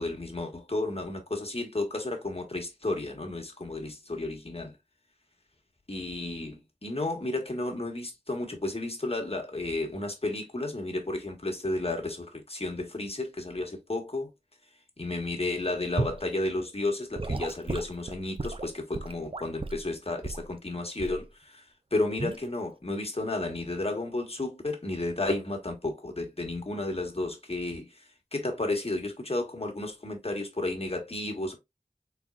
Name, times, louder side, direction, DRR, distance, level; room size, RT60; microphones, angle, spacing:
voice 1, 0.0-4.7 5.9-14.3 15.0-21.6 21.9-28.0 28.3-31.6, left 2 dB, 40° left, 1.6 m, -32 dB
Gurgling / Sink (filling or washing) / Liquid, 16.0-16.2 17.2-19.9 20.2-20.5 21.0-21.3 22.2-22.4, right 3 dB, 35° right, 0.5 m, -34 dB
4.3 x 4.0 x 2.4 m
wide cardioid pair, 50°, 15 cm